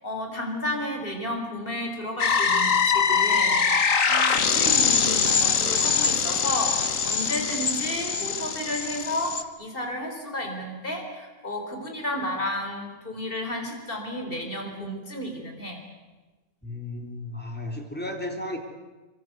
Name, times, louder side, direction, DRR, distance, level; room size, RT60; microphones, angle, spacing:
voice 1, 0.0-6.8 7.0-15.8, left 1 dB, 40° left, 3 dB, 4.7 m, -32 dB
sound 1, 2.2-9.4, left 6 dB, 65° left, 1.9 m, -23 dB
voice 2, 16.6-18.6, left 1 dB, 5° left, 2 dB, 3.7 m, -34 dB
27.0 x 24.0 x 8.1 m, 1.2 s
omnidirectional pair, 1.5 m